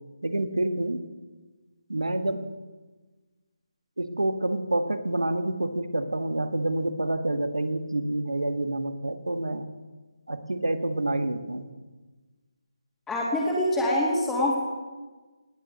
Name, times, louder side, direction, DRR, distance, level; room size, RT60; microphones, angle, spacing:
voice 1, 0.2-1.1 1.9-2.5 4.0-9.7 10.3-11.7, right 1 dB, 80° right, 9 dB, 1.7 m, -28 dB
voice 2, 13.1-14.6, left 1 dB, 5° left, -3 dB, 2.4 m, -25 dB
19.0 x 9.2 x 7.9 m, 1.3 s
figure-of-eight pair, 155°, 3 cm